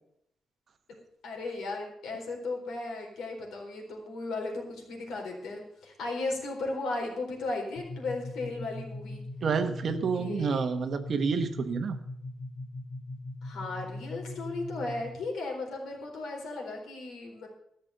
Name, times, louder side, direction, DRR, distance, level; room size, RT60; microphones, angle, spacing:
voice 1, 0.9-9.2 10.1-10.6 13.4-17.5, left 2 dB, 90° left, 0 dB, 4.2 m, -36 dB
sound 1, 7.8-15.3, left 2 dB, 55° left, 2.7 m, -41 dB
voice 2, 9.4-12.0, right 5 dB, 40° right, 8 dB, 1.1 m, -29 dB
14.5 x 6.7 x 8.1 m, 0.76 s
wide cardioid pair, 180°, 0 cm